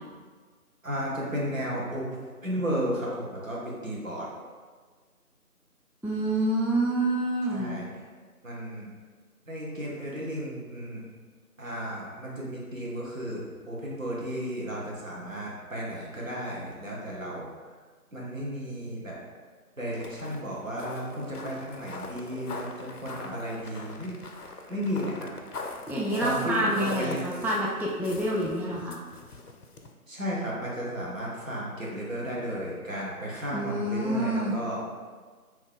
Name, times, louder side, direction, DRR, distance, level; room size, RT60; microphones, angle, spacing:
voice 1, 0.8-2.2 2.4-4.3 7.5-7.9 8.4-8.9 9.5-11.1 11.6-17.5 18.1-19.2 19.8-24.2 24.7-25.3 26.2-27.3 30.1-34.8, equal, 60° right, -5 dB, 0.9 m, -34 dB
voice 2, 6.0-7.8 25.9-29.0 33.5-34.6, right 1 dB, 5° right, -5 dB, 0.3 m, -27 dB
sound 1, 19.9-29.9, left 3 dB, 80° left, 0.5 m, -42 dB
2.9 x 2.2 x 3.6 m, 1.5 s
figure-of-eight pair, 175°, 46 cm